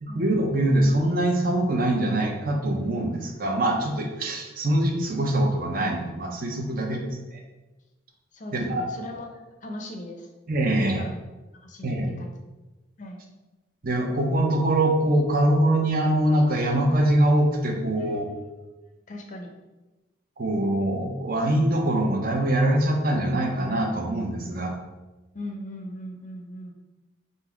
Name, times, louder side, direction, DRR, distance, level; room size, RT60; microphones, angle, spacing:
voice 1, 0.0-7.0 8.5-8.8 10.5-11.1 11.8-12.1 13.8-18.3 20.4-24.7, right 1 dB, 45° right, 2 dB, 0.6 m, -23 dB
voice 2, 6.7-7.1 8.3-10.3 10.8-11.1 11.6-12.3 13.0-13.2 18.0-18.2 19.1-19.5 25.3-26.7, left 1 dB, 40° left, 3 dB, 0.5 m, -39 dB
3.9 x 2.1 x 4.5 m, 1.1 s
head